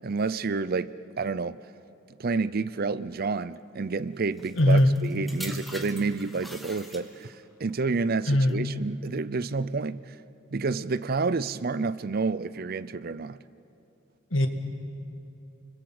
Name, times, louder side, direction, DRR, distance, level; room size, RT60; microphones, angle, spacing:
voice 1, 0.0-1.6 2.2-10.2 10.5-13.4, right 4 dB, 50° right, 0.6 m, -29 dB
sound 1, 4.4-7.4 8.2-8.5, equal, ahead, 1.8 m, -43 dB
voice 2, 4.6-4.9 8.3-8.6 14.3-14.5, left 1 dB, 80° left, 2.1 m, -19 dB
29.5 x 21.5 x 7.9 m
head